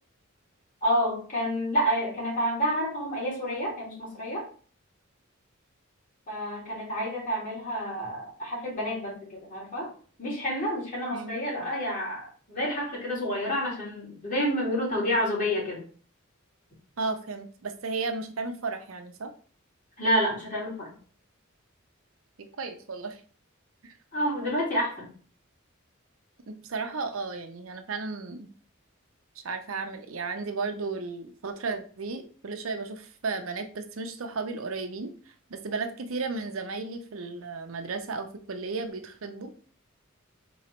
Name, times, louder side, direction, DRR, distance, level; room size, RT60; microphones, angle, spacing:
voice 1, 0.8-4.5 6.3-9.9 10.2-15.8 20.0-20.9 24.1-25.1, equal, 40° left, -5 dB, 2.4 m, -29 dB
voice 2, 11.1-11.7 17.0-19.3 22.4-23.2 23.8-24.0 26.5-28.5 29.4-39.5, right 4 dB, 70° right, 6 dB, 0.7 m, -34 dB
3.9 x 3.1 x 4.3 m, 0.42 s
head